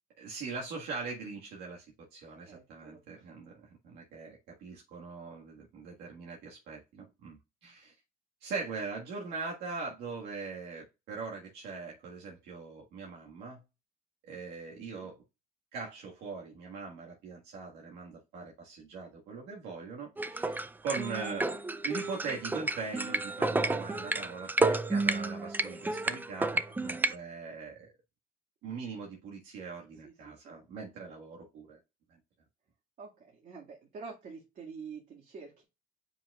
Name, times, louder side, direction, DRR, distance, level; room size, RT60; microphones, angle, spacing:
voice 1, 0.2-1.9 2.1-7.9 8.4-13.6 14.2-15.2 15.7-21.6 21.8-27.9 28.6-31.8, right 4 dB, 80° right, 1.7 m, -41 dB
voice 2, 2.2-3.3 14.9-15.1 26.9-27.1 30.0-30.6 33.0-35.6, right 5 dB, 50° right, 2.0 m, -48 dB
sound 1, 20.2-27.1, right 2 dB, 10° right, 0.4 m, -31 dB
7.4 x 5.5 x 2.4 m
cardioid pair, 110°, 17 cm